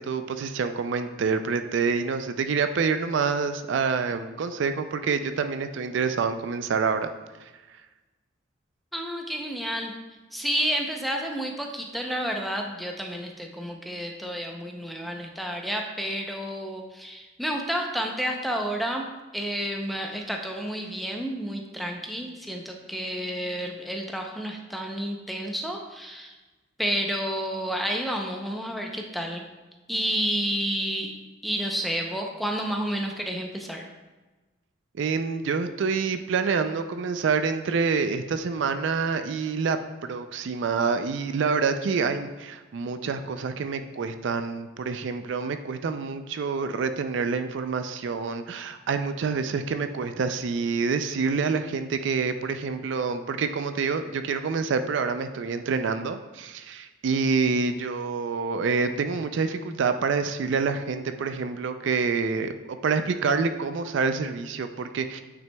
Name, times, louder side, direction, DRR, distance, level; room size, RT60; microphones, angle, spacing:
voice 1, 0.0-7.1 7.4-7.5 34.9-65.2, right 5 dB, 60° right, 9 dB, 0.4 m, -27 dB
voice 2, 8.9-9.9 10.3-19.1 19.3-26.4 26.8-29.5 29.9-31.1 31.4-33.9, equal, ahead, 2 dB, 0.5 m, -30 dB
8.9 x 6.0 x 2.2 m, 1.2 s
head